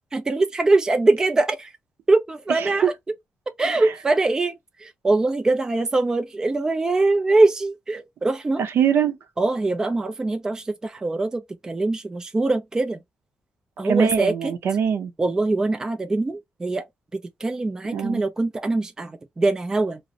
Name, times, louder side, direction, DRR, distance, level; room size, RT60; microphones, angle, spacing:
voice 1, 0.1-1.7 2.1-2.9 3.6-8.6 9.4-13.0 13.8-14.5 15.2-16.8 17.1-20.0, right 2 dB, 15° right, 0.3 m, -22 dB
voice 2, 8.6-9.2 13.9-15.1 17.9-18.2, right 8 dB, 80° right, 0.6 m, -23 dB
2.4 x 2.0 x 2.7 m
wide cardioid pair, 160°, 4 cm